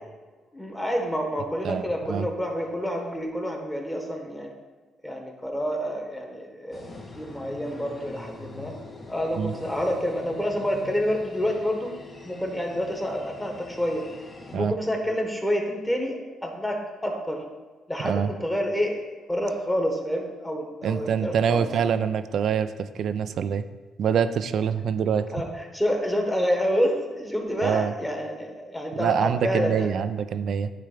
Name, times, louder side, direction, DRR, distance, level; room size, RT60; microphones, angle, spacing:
voice 1, 0.5-4.5 5.0-6.8 7.2-8.7 9.1-12.0 12.2-14.0 14.5-17.4 17.9-19.0 19.3-21.7 25.3-29.9, equal, 10° left, 2 dB, 1.4 m, -28 dB
voice 2, 1.6-2.3 9.4-9.5 14.5-14.7 18.0-18.3 20.8-23.6 24.0-25.3 27.6-27.9 29.0-30.7, right 7 dB, 65° right, 12 dB, 0.4 m, -25 dB
sound 1, 6.7-14.6, left 3 dB, 40° left, 1.3 m, -44 dB
9.9 x 3.4 x 5.1 m, 1.3 s
cardioid pair, 90°, 0 cm